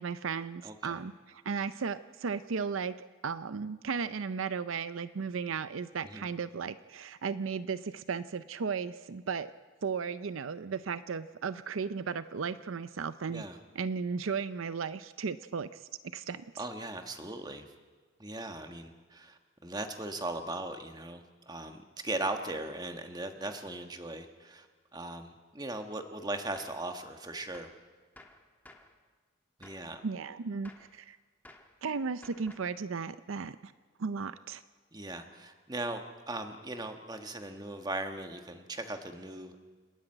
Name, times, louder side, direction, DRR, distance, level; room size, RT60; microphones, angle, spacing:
voice 1, 0.0-2.9 3.2-9.5 9.8-13.4 13.7-16.4 30.0-31.2 31.8-33.7 34.0-34.6, right 5 dB, 75° right, 14 dB, 0.5 m, -35 dB
voice 2, 0.6-1.0 6.0-6.3 13.3-13.6 16.6-17.7 18.2-24.7 24.9-27.7 29.6-30.0 34.9-39.6, right 2 dB, 20° right, 6 dB, 1.4 m, -39 dB
Gunshot gunfire, 26.6-26.9 27.5-27.8 28.2-29.0 29.6-29.9 30.6-31.0 31.5-31.8 32.2-32.8, left 1 dB, 10° left, 1.3 m, -55 dB
29.5 x 10.0 x 8.8 m, 1.4 s
head